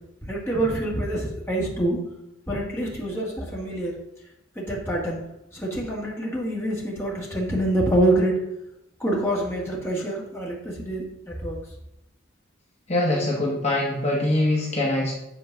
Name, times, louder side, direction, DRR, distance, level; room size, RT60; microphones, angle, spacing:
voice 1, 0.3-2.0 2.5-3.9 4.6-5.2 5.5-8.4 9.0-11.6, right 1 dB, 10° left, -4 dB, 1.9 m, -26 dB
voice 2, 12.9-15.1, left 1 dB, 30° left, -4 dB, 1.4 m, -23 dB
8.5 x 4.5 x 5.8 m, 0.86 s
head